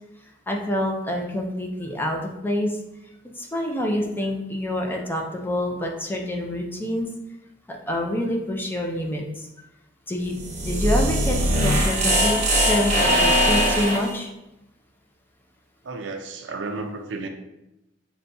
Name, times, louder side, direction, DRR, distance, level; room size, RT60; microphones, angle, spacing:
voice 1, 0.5-2.8 3.4-7.1 7.7-9.5 10.1-10.4 10.6-14.3, left 1 dB, 10° left, 0 dB, 0.5 m, -27 dB
sound 1, 10.3-14.1, equal, 40° right, 0.7 m, -21 dB
voice 2, 15.8-17.3, right 3 dB, 75° right, 5 dB, 0.5 m, -32 dB
6.7 x 2.2 x 2.6 m, 0.91 s
head